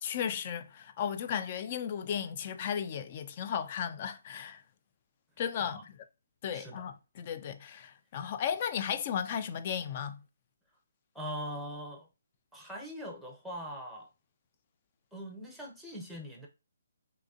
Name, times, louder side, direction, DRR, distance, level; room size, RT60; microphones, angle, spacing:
voice 1, 0.0-4.6 5.4-6.0 6.4-10.2, left 8 dB, 35° left, 0.3 m, -35 dB
voice 2, 6.5-6.9 11.1-12.1 12.5-14.1 15.1-16.5, equal, ahead, 0.7 m, -42 dB
3.8 x 2.6 x 2.8 m
hypercardioid pair, 160°, 0 cm